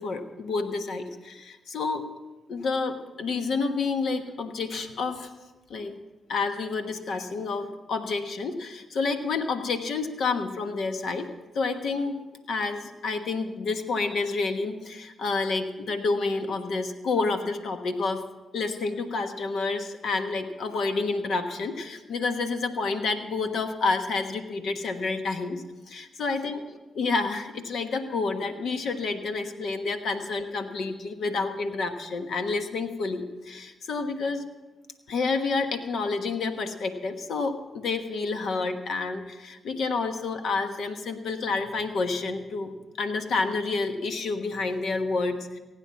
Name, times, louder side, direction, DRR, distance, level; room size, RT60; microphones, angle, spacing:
voice 1, 0.0-2.0 2.5-5.3 5.7-5.9 6.3-12.2 12.5-18.2 18.5-34.5 35.1-42.7 43.0-45.6, left 4 dB, 70° left, 7 dB, 1.2 m, -29 dB
16.5 x 9.0 x 5.9 m, 1.1 s
supercardioid pair, 55°, 0 cm